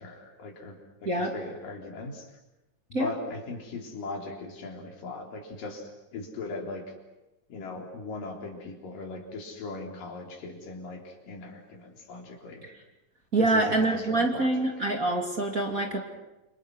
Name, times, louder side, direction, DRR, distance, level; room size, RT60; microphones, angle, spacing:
voice 1, 0.0-2.3 2.9-7.0 7.5-12.7 13.4-14.9, left 3 dB, 80° left, 2 dB, 5.3 m, -39 dB
voice 2, 13.3-16.0, right 2 dB, 25° right, 3 dB, 2.7 m, -25 dB
28.5 x 26.5 x 6.3 m, 0.99 s
omnidirectional pair, 3.8 m